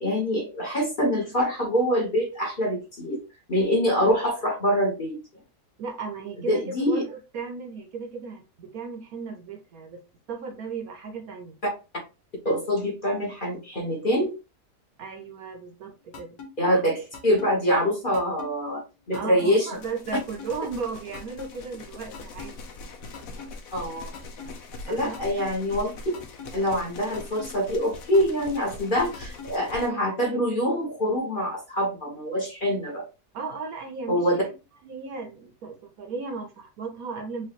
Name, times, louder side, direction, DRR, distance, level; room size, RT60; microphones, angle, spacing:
voice 1, 0.0-3.2 3.5-5.2 6.5-7.0 12.4-14.3 16.6-19.7 23.7-24.1 24.9-25.9 26.5-33.0 34.1-34.4, equal, 35° left, 1.2 m, -25 dB
voice 2, 5.8-10.0 10.3-11.6 15.0-16.4 19.1-22.6 24.9-25.2 33.3-34.5 34.8-37.5, right 4 dB, 70° right, 1.1 m, -36 dB
sound 1, 16.1-16.5 17.1-17.5 18.1-18.5 19.1-19.5 20.1-20.5 21.1-21.5 22.1-22.5 23.1-23.5 24.1-24.5 25.1-25.5 26.1-26.5 27.1-27.5 28.1-28.5 29.1-29.5, left 5 dB, 80° left, 1.6 m, -40 dB
sound 2, 19.7-29.9, left 3 dB, 65° left, 1.1 m, -42 dB
5.0 x 2.6 x 2.9 m
omnidirectional pair, 1.8 m